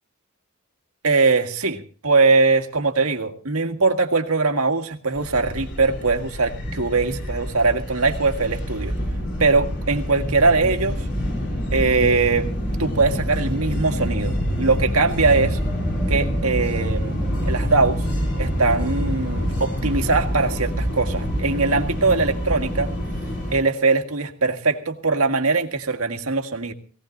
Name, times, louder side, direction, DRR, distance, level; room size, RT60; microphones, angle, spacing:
voice 1, 1.0-8.9 9.4-11.0 11.7-12.5 12.8-15.6 16.1-18.0 18.4-22.9 23.5-26.7, right 3 dB, 80° right, 5 dB, 1.8 m, -21 dB
sound 1, 5.1-23.6, equal, 55° left, 3.7 m, -26 dB
22.5 x 17.0 x 2.6 m, 0.39 s
head